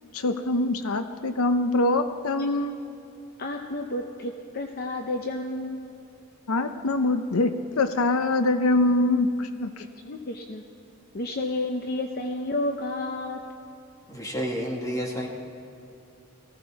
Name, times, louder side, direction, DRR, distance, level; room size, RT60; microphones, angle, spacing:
voice 1, 0.1-2.8 6.5-9.8, left 2 dB, 80° left, 9 dB, 0.6 m, -24 dB
voice 2, 3.4-5.8 10.0-10.6 11.1-13.4, left 2 dB, 45° left, 4 dB, 0.7 m, -31 dB
voice 3, 14.1-15.3, equal, 15° left, 0 dB, 1.8 m, -30 dB
18.5 x 15.5 x 4.7 m, 2.7 s
head